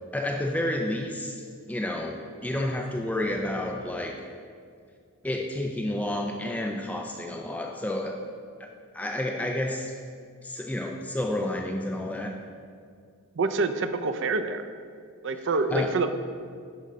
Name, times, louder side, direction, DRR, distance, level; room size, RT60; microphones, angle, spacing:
voice 1, 0.1-4.2 5.2-8.2 8.6-8.7 8.9-10.0 10.4-12.4 15.7-15.9, left 1 dB, 5° left, 1 dB, 0.4 m, -30 dB
voice 2, 13.4-14.7 15.2-16.1, right 3 dB, 55° right, 9 dB, 0.5 m, -26 dB
10.0 x 3.9 x 5.3 m, 2.2 s
head